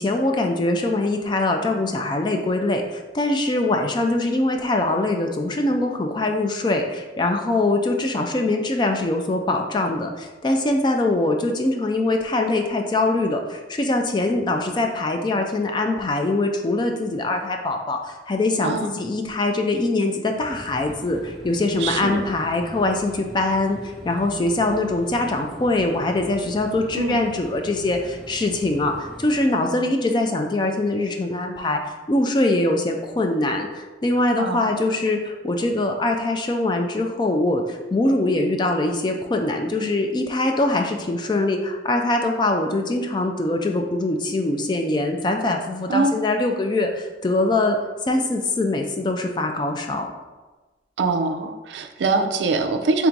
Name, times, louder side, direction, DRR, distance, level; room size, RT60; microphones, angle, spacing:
voice 1, 0.0-47.8 48.0-50.1, left 2 dB, 25° left, 4 dB, 0.3 m, -23 dB
sound 1, 20.3-29.4, equal, ahead, 0.7 m, -42 dB
voice 2, 21.8-22.2 26.9-27.2 34.4-34.7 45.9-46.2 51.0-53.1, right 3 dB, 80° right, 6 dB, 0.4 m, -23 dB
3.5 x 2.6 x 4.5 m, 1.2 s
head